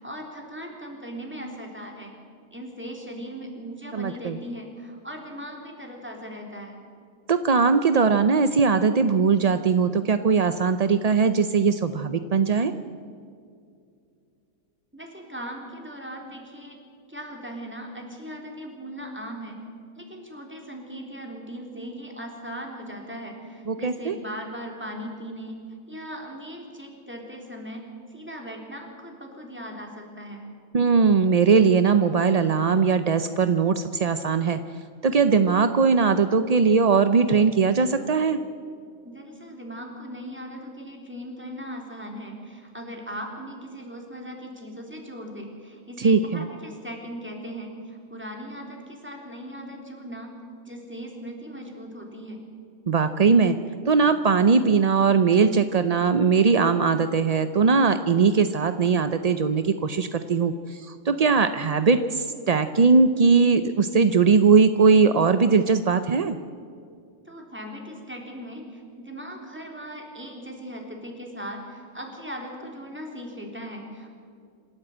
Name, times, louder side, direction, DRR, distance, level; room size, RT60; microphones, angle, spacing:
voice 1, 0.0-2.1 2.5-6.8 14.9-16.8 17.1-19.6 20.0-25.6 25.9-27.8 28.1-30.4 39.0-50.3 50.7-52.4 67.2-74.1, equal, 10° right, 1 dB, 3.6 m, -38 dB
voice 2, 3.9-4.4 7.3-12.7 23.7-24.2 30.7-34.6 35.0-38.4 46.0-46.4 52.9-53.6 53.9-66.4, right 5 dB, 45° right, 10 dB, 0.5 m, -20 dB
26.5 x 13.0 x 7.9 m, 2.4 s
omnidirectional pair, 1.5 m